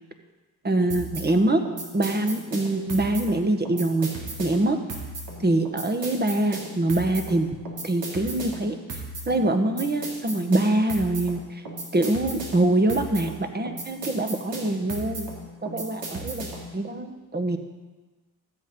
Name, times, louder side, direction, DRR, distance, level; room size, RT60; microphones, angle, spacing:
voice 1, 0.6-1.7 1.9-4.1 4.4-4.8 5.4-7.6 7.8-8.8 9.3-11.4 11.9-15.3 15.6-16.5 16.7-17.6, right 2 dB, 20° right, 7 dB, 1.5 m, -24 dB
sound 1, 0.9-16.8, right 2 dB, 75° right, 3.3 m, -36 dB
14.0 x 7.8 x 5.4 m, 1.3 s
supercardioid pair, 65°, 43 cm